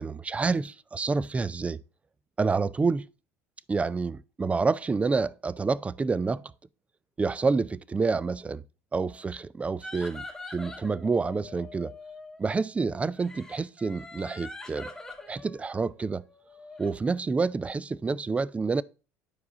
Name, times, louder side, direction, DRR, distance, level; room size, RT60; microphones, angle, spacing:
voice 1, 0.0-1.8 2.4-3.1 3.7-6.5 7.2-8.6 8.9-10.2 10.5-11.9 12.4-14.9 15.3-16.2 16.8-18.8, right 4 dB, 15° right, 0.3 m, -28 dB
sound 1, 9.8-12.4 13.2-17.0, left 2 dB, 5° left, 1.5 m, -44 dB
10.0 x 4.7 x 3.6 m
hypercardioid pair, 70°, 7 cm